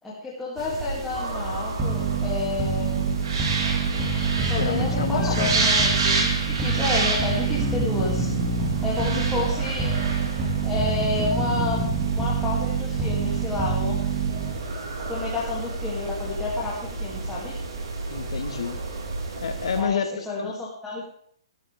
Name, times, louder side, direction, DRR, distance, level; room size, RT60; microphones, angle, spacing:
voice 1, 0.0-3.1 4.4-8.3 8.8-9.9 10.6-11.8 12.1-14.1 14.6-14.7 15.1-17.6 19.8-21.0, left 3 dB, 5° left, -7 dB, 2.5 m, -30 dB
sound 1, 0.6-19.8, right 3 dB, 60° right, 4.4 m, -30 dB
sound 2, 1.8-14.7, right 5 dB, 15° right, 1.9 m, -26 dB
voice 2, 4.5-5.5 6.7-6.9 8.9-9.5 18.1-18.8 19.4-20.5, left 6 dB, 75° left, 8 dB, 1.7 m, -30 dB
16.5 x 12.5 x 3.5 m, 0.63 s
hypercardioid pair, 165°, 3 cm